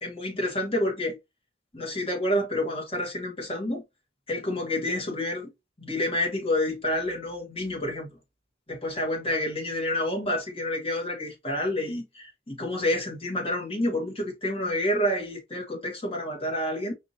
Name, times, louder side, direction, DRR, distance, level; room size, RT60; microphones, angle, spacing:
voice 1, 0.0-1.2 1.7-3.8 4.3-5.5 5.8-8.1 8.7-16.9, left 1 dB, 30° left, 1.5 m, -29 dB
4.9 x 2.7 x 2.7 m
head